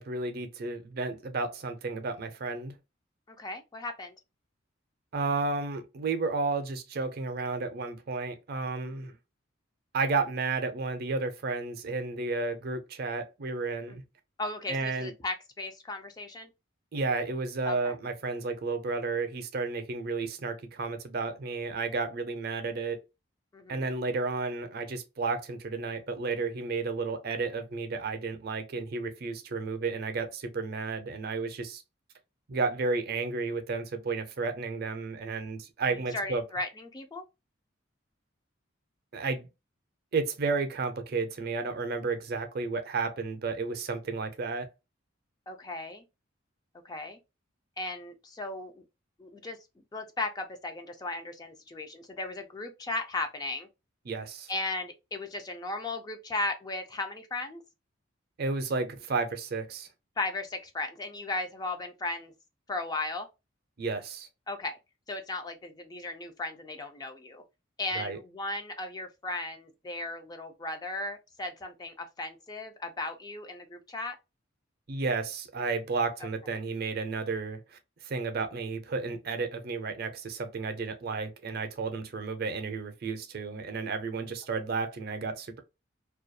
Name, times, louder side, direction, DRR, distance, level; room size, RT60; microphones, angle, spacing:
voice 1, 0.0-2.7 5.1-9.1 9.9-14.0 14.7-15.1 16.9-23.0 23.7-31.8 32.5-36.4 39.1-39.5 40.1-44.7 54.1-54.5 58.4-59.9 63.8-64.3 67.9-68.2 74.9-85.6, right 4 dB, 50° right, 0.5 m, -32 dB
voice 2, 3.3-4.1 14.4-16.5 17.7-17.9 23.5-23.9 36.1-37.2 45.5-46.0 46.8-47.2 47.8-48.8 49.2-49.6 49.9-53.7 54.5-57.6 60.2-62.3 62.7-63.3 64.5-64.8 65.1-67.4 67.8-74.2, left 2 dB, 20° left, 0.3 m, -36 dB
2.3 x 2.2 x 2.6 m
head